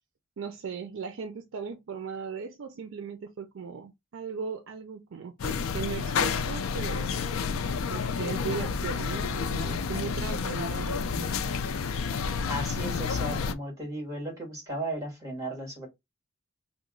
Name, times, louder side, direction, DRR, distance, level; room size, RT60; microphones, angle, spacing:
voice 1, 0.4-7.1 7.9-11.4, right 6 dB, 65° right, 0.4 m, -38 dB
sound 1, 5.4-13.5, left 5 dB, 80° left, 0.4 m, -30 dB
voice 2, 12.4-15.9, right 1 dB, 15° right, 1.8 m, -35 dB
2.9 x 2.1 x 3.7 m
head